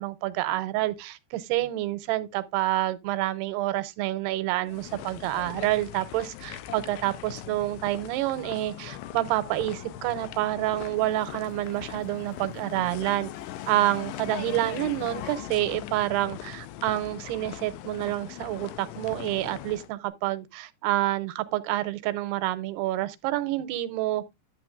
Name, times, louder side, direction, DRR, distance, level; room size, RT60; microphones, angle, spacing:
voice 1, 0.0-13.3 13.7-24.2, right 16 dB, 80° right, 2.5 m, -28 dB
sound 1, 4.7-19.9, left 12 dB, 85° left, 2.9 m, -40 dB
sound 2, 11.0-15.4, left 5 dB, 65° left, 4.6 m, -54 dB
11.5 x 7.7 x 2.4 m
omnidirectional pair, 4.9 m